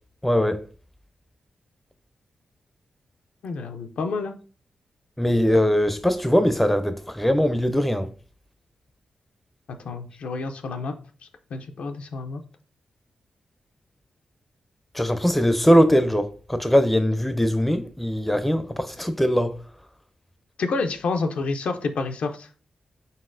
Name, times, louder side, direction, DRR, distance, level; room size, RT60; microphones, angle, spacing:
voice 1, 0.2-0.6 5.2-8.1 14.9-19.5, equal, 5° left, 0.4 m, -21 dB
voice 2, 3.4-4.4 9.8-10.9 11.5-12.4 20.6-22.5, left 3 dB, 75° left, 0.5 m, -28 dB
4.0 x 4.0 x 2.5 m
cardioid pair, 70°, 2 cm